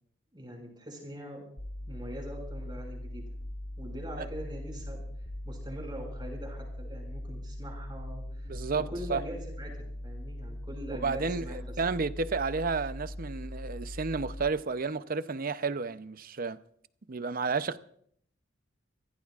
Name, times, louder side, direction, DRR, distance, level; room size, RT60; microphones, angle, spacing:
voice 1, 0.3-1.4 1.9-3.2 3.8-5.0 5.4-11.8, equal, 25° right, 6.1 m, -42 dB
sound 1, 1.6-14.5, left 1 dB, 60° left, 2.3 m, -40 dB
voice 2, 8.5-9.2 10.9-16.6 17.1-17.8, right 4 dB, 50° right, 0.7 m, -32 dB
27.0 x 16.0 x 2.5 m
head